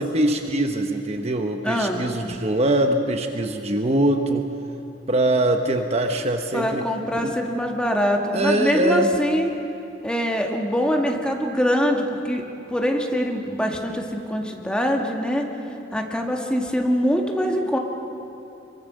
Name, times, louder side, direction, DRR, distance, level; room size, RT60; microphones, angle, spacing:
voice 1, 0.0-4.5 5.1-6.8 7.2-7.3 8.3-9.1, right 1 dB, 40° right, 5 dB, 1.1 m, -22 dB
voice 2, 1.6-2.0 6.5-9.5 10.0-12.4 12.7-15.5 15.9-17.8, equal, 5° left, 1 dB, 2.0 m, -23 dB
25.0 x 23.0 x 6.4 m, 2.8 s
head